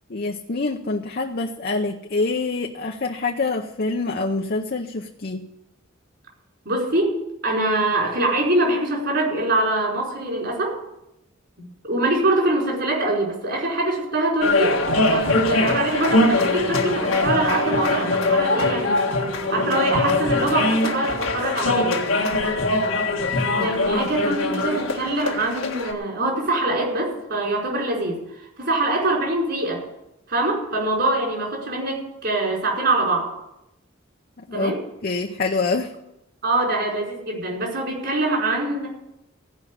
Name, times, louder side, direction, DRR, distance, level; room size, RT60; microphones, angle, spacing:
voice 1, 0.1-5.5 23.5-24.4 34.5-34.8 35.0-35.9, left 3 dB, 50° left, 2 dB, 0.7 m, -26 dB
voice 2, 6.6-10.8 11.6-14.8 15.1-19.0 19.5-21.9 23.6-28.2 28.6-29.8 30.3-33.3 34.5-34.8 36.4-38.9, right 2 dB, 55° right, -2 dB, 4.9 m, -24 dB
sound 1, 14.4-25.9, left 2 dB, 85° left, 1.7 m, -22 dB
16.0 x 5.6 x 8.4 m, 0.89 s
head